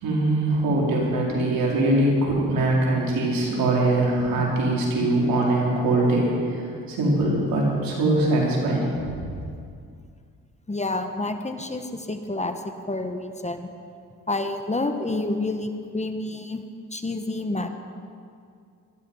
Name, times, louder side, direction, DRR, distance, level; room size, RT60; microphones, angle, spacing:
voice 1, 0.0-9.0, right 2 dB, 75° right, -3 dB, 4.6 m, -22 dB
voice 2, 10.7-13.7 14.3-16.6 16.9-17.7, left 2 dB, 20° left, 7 dB, 1.4 m, -29 dB
18.5 x 13.5 x 5.7 m, 2.3 s
supercardioid pair, 70°, 35 cm